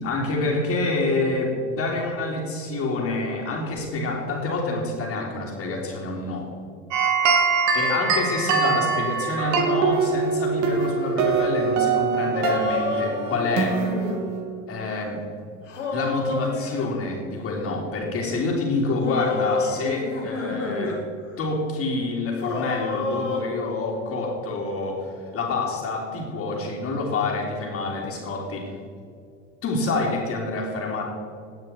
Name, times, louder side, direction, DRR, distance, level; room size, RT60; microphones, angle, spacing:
voice 1, 0.0-6.5 7.7-13.8 14.7-15.2 15.9-21.0 21.4-28.7 29.6-31.0, left 3 dB, 40° left, -7 dB, 3.3 m, -27 dB
sound 1, 6.9-14.4, right 5 dB, 50° right, 2.7 m, -23 dB
sound 2, 12.3-14.2 15.7-16.9 19.0-21.0 21.3-21.4 22.4-23.4, left 3 dB, 90° left, 2.6 m, -29 dB
17.0 x 8.9 x 4.6 m, 2.3 s
hypercardioid pair, 90°, 36 cm